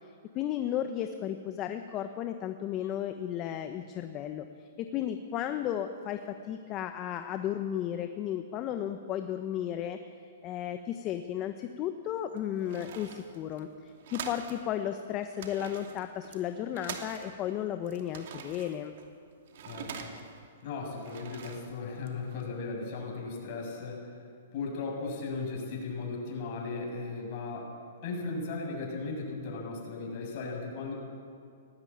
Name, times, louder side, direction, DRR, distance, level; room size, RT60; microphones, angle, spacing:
voice 1, 0.3-4.5 4.8-10.0 10.4-18.9, left 10 dB, 30° left, 8 dB, 1.0 m, -34 dB
sound 1, 12.1-14.6 14.9-15.0 15.2-17.5 17.9-20.4 20.9-22.4, right 7 dB, 60° right, 2.8 m, -45 dB
voice 2, 19.7-20.1 20.6-24.1 24.5-27.7 28.0-30.9, left 3 dB, 45° left, 0 dB, 7.1 m, -36 dB
18.5 x 17.0 x 8.8 m, 2.4 s
hypercardioid pair, 135°, 0 cm